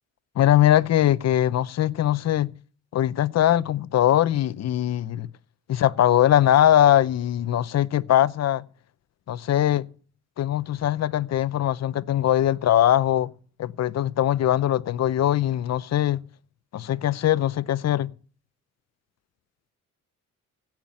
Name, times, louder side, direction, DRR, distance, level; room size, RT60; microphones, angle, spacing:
voice 1, 0.4-2.5 2.9-5.3 5.7-8.6 9.3-9.9 10.4-13.3 13.6-16.2 16.7-18.1, left 12 dB, 60° left, 0.8 m, -21 dB
16.0 x 6.0 x 8.8 m
cardioid pair, 90°, 30 cm